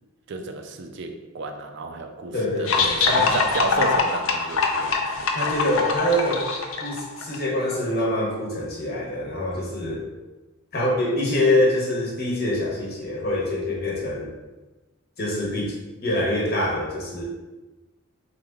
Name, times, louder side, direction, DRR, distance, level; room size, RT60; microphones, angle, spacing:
voice 1, 0.3-5.3, right 3 dB, 50° right, 6 dB, 0.4 m, -32 dB
voice 2, 2.3-3.3 5.3-6.5 6.8-10.0 10.7-14.3 15.2-15.7 16.0-17.2, left 1 dB, 45° left, -4 dB, 1.0 m, -25 dB
sound 1, 2.7-7.4, left 4 dB, 65° left, 0.5 m, -23 dB
3.9 x 3.1 x 3.6 m, 1.2 s
head